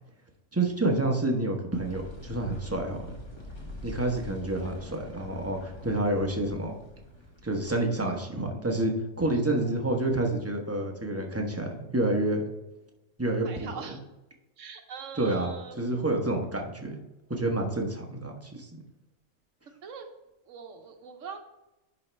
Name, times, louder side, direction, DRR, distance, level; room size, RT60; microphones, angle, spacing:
voice 1, 0.5-3.1 3.8-6.7 7.4-8.9 9.2-12.4 13.2-13.7 15.1-15.5 15.8-17.0 17.3-18.8, right 2 dB, 10° right, 1 dB, 0.9 m, -28 dB
sound 1, 1.7-9.1, left 1 dB, 20° left, 1.3 m, -45 dB
voice 2, 13.4-14.0 14.6-15.8 19.8-20.1 20.5-21.4, right 6 dB, 65° right, 5 dB, 1.2 m, -42 dB
10.5 x 4.1 x 3.3 m, 1.0 s
omnidirectional pair, 1.4 m